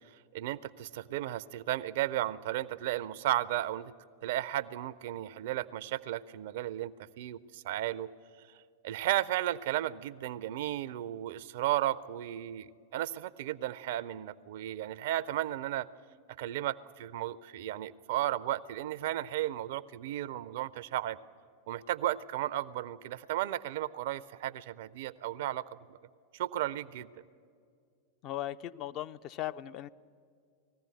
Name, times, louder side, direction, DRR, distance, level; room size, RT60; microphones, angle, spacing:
voice 1, 0.3-3.9 4.2-8.1 8.8-15.9 16.4-21.2 21.7-26.0 26.3-27.1, right 13 dB, 55° right, 17 dB, 0.5 m, -34 dB
voice 2, 28.2-29.9, left 13 dB, 40° left, 12 dB, 0.4 m, -38 dB
19.5 x 15.0 x 9.1 m, 2.3 s
figure-of-eight pair, 90°, 0 cm